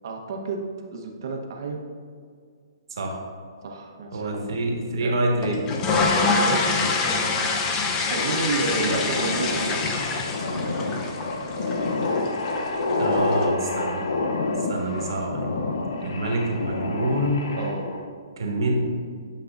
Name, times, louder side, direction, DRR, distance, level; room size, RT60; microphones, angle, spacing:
voice 1, 0.0-0.6 0.9-1.9 3.6-4.5 5.0-5.1 5.9-6.5 8.1-10.0 17.5-17.9, right 3 dB, 55° right, 2 dB, 1.1 m, -31 dB
voice 2, 4.1-5.7 8.7-8.9 13.0-14.0 14.7-15.5 16.0-17.4 18.4-18.9, right 1 dB, 75° right, 0 dB, 1.7 m, -26 dB
sound 1, 5.4-13.5, left 3 dB, 20° left, 0.7 m, -26 dB
sound 2, 8.2-18.1, left 2 dB, 80° left, 0.8 m, -28 dB
9.5 x 5.5 x 2.6 m, 2.1 s
hypercardioid pair, 150°, 2 cm